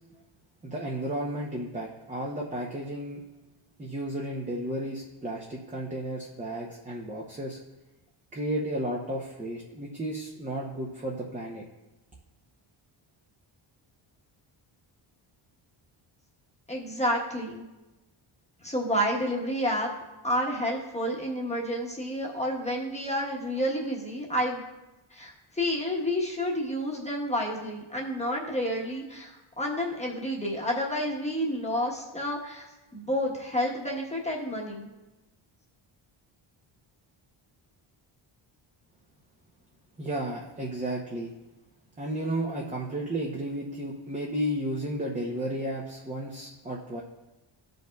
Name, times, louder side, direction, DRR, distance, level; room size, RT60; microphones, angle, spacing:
voice 1, 0.6-3.2 3.8-7.6 8.3-11.6 40.0-41.3 42.0-47.0, right 1 dB, 15° right, -2 dB, 0.7 m, -33 dB
voice 2, 16.7-17.6 18.6-19.9 20.2-24.6 25.1-32.7 32.9-34.9, equal, 15° left, -2 dB, 1.1 m, -30 dB
14.0 x 5.3 x 2.3 m, 1.0 s
wide cardioid pair, 135°, 49 cm